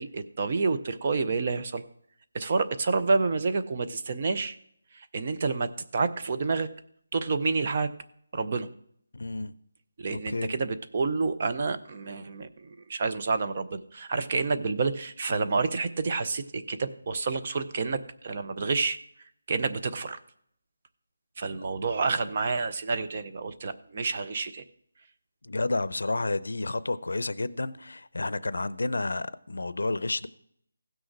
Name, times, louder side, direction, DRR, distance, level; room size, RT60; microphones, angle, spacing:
voice 1, 0.0-1.8 2.3-4.6 4.9-6.7 7.1-7.9 8.3-8.7 10.0-19.0 19.5-20.2 21.4-24.6, right 4 dB, 25° right, 0.5 m, -29 dB
voice 2, 9.1-9.5 10.1-10.5 22.2-22.3 25.4-30.3, left 2 dB, 75° left, 0.6 m, -30 dB
16.0 x 6.3 x 4.6 m
figure-of-eight pair, 180°, 0 cm